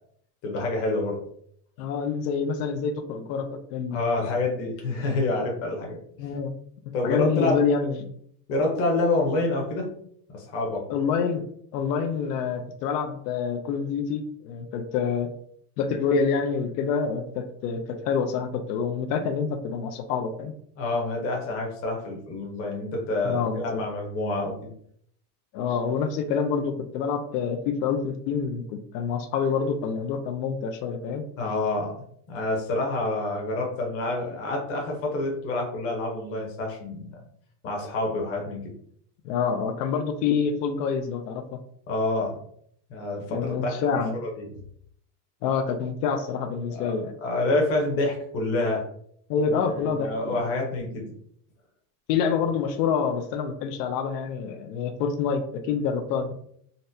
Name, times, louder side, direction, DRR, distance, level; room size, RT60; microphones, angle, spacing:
voice 1, 0.4-1.2 3.9-6.0 6.9-7.6 8.5-9.9 10.3-10.9 20.8-24.7 31.4-32.0 32.3-37.1 37.6-38.7 41.9-42.4 42.9-44.4 46.7-46.9 47.2-48.8 49.6-51.1, left 2 dB, 30° left, -1 dB, 0.8 m, -27 dB
voice 2, 1.8-4.0 6.2-6.5 7.0-8.1 10.9-15.3 15.8-20.5 23.2-23.8 25.5-31.2 39.2-41.6 43.3-44.2 45.4-47.1 49.3-50.4 52.1-56.3, left 6 dB, 85° left, 6 dB, 0.6 m, -27 dB
4.0 x 2.1 x 2.6 m, 0.67 s
supercardioid pair, 165°, 47 cm